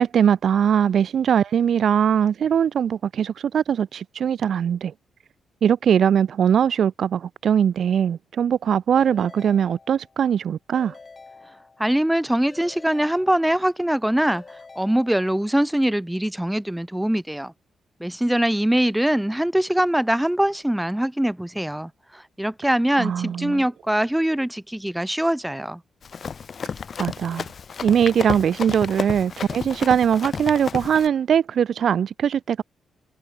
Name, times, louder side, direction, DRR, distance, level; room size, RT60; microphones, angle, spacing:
voice 1, 0.0-4.9 5.6-10.9 23.0-23.6 27.0-27.5 27.8-32.6, right 8 dB, 55° right, 0.3 m, -21 dB
Keyboard (musical) / Ringtone, 9.0-10.3 10.7-12.1 12.5-13.8 14.3-15.6, left 4 dB, 25° left, 5.0 m, -47 dB
voice 2, 11.8-14.4 14.8-17.5 18.0-25.8, right 1 dB, 5° right, 1.1 m, -23 dB
Run, 26.0-31.1, left 6 dB, 40° left, 1.2 m, -32 dB
cardioid pair, 145°, 0 cm